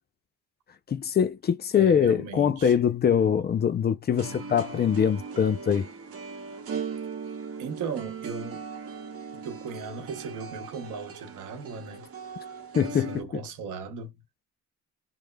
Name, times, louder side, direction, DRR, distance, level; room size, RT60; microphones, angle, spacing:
voice 1, 0.9-5.9 12.8-13.3, left 8 dB, 35° left, 0.4 m, -23 dB
voice 2, 1.7-2.8 7.6-8.6 9.3-12.1 12.8-14.2, right 5 dB, 90° right, 0.8 m, -37 dB
sound 1, 4.1-13.2, right 5 dB, 50° right, 0.8 m, -39 dB
3.2 x 2.0 x 2.2 m
cardioid pair, 90°, 30 cm